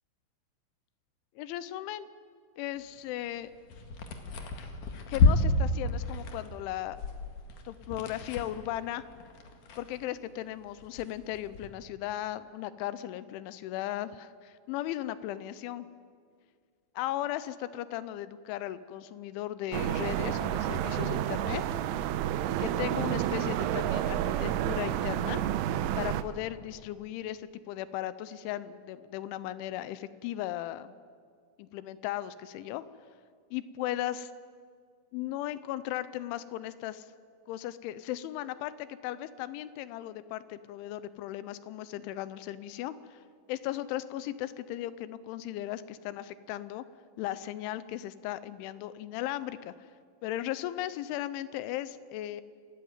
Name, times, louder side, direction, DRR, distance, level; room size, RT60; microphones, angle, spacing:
voice 1, 1.4-2.1 2.6-3.5 5.1-7.0 7.7-9.0 9.8-15.9 17.0-21.6 22.6-25.4 26.0-30.9 31.6-32.8 33.5-34.3 35.1-37.1 37.5-43.2 43.5-46.9 47.2-49.9 50.2-52.4, left 13 dB, 80° left, 15 dB, 3.0 m, -36 dB
sound 1, 3.4-10.4 10.7-11.7, left 3 dB, 55° left, 2.5 m, -30 dB
sound 2, 19.7-26.2, right 11 dB, 85° right, 3.3 m, -30 dB
27.5 x 13.5 x 9.4 m, 2.1 s
omnidirectional pair, 5.7 m